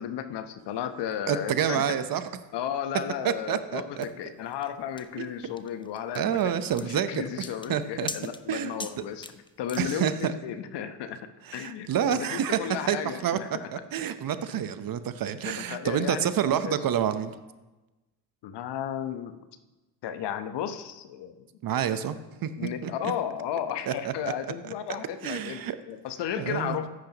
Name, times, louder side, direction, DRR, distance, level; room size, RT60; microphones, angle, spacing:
voice 1, 0.0-6.5 6.8-11.2 11.5-13.7 14.5-14.7 15.5-16.3 16.6-16.8 18.4-19.4 20.0-21.5 22.6-26.9, left 9 dB, 55° left, 9 dB, 1.1 m, -34 dB
voice 2, 1.3-2.2 3.2-4.1 5.2-5.3 6.1-7.2 7.7-8.1 8.5-8.7 9.8-10.3 11.5-12.6 12.9-13.4 13.7-17.3 21.6-22.2 22.4-22.9 23.9-24.3 24.6-24.7 25.2-25.8 26.4-26.8, right 9 dB, 45° right, 11 dB, 0.9 m, -28 dB
sound 1, 4.0-10.3, left 3 dB, 10° left, 0.6 m, -42 dB
14.5 x 10.0 x 3.0 m, 1.1 s
hypercardioid pair, 65°, 49 cm